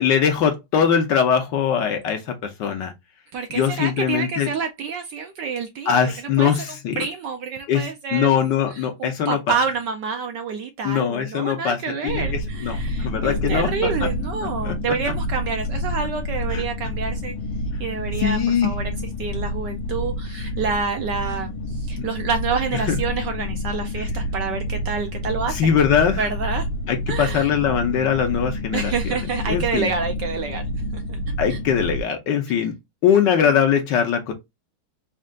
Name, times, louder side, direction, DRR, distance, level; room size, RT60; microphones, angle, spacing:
voice 1, 0.0-2.9 3.5-4.5 5.9-7.0 7.7-9.6 10.8-13.7 14.0-14.1 14.6-14.8 16.5-16.6 18.2-18.8 22.0-22.1 22.9-23.0 25.5-26.3 26.9-28.9 29.5-29.9 31.4-32.7 33.0-34.3, left 8 dB, 65° left, 1.2 m, -21 dB
voice 2, 3.3-6.0 6.4-6.5 6.9-17.3 17.8-18.9 19.2-25.6 26.2-26.7 27.1-27.5 28.7-30.6 30.9-31.2 31.5-31.6 33.4-33.6, right 5 dB, 70° right, 1.1 m, -28 dB
sound 1, 12.1-32.0, left 1 dB, 85° left, 1.5 m, -28 dB
4.4 x 2.4 x 3.6 m
omnidirectional pair, 2.3 m